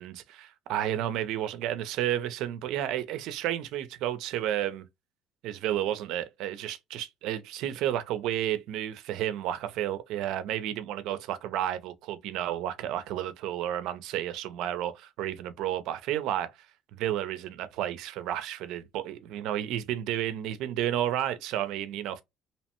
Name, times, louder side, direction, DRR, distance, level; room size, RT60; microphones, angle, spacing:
voice 1, 0.0-4.9 5.4-16.5 16.9-22.2, right 11 dB, 75° right, 0.5 m, -31 dB
2.8 x 2.1 x 2.9 m
cardioid pair, 130°, 0 cm